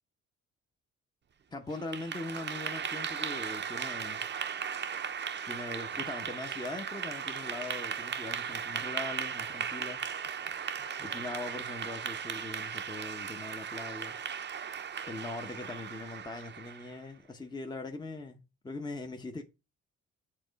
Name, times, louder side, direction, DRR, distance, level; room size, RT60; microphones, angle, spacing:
voice 1, 1.5-4.3 5.4-10.0 11.0-14.2 15.0-19.4, left 2 dB, 15° left, 0.8 m, -41 dB
Clapping / Applause, 1.7-17.0, right 7 dB, 35° right, 0.6 m, -37 dB
7.7 x 3.7 x 5.1 m
cardioid pair, 90°, 30 cm